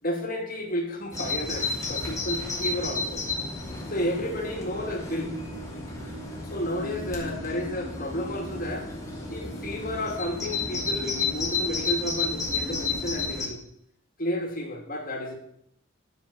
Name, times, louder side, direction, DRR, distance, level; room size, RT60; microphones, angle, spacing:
voice 1, 0.0-3.2 3.9-5.3 6.4-8.9 9.3-13.6 14.2-15.3, left 1 dB, 45° left, 0 dB, 2.7 m, -31 dB
Bird vocalization bird call bird song, 1.1-13.5, left 3 dB, 15° left, 2.8 m, -32 dB
9.8 x 6.6 x 7.0 m, 0.73 s
head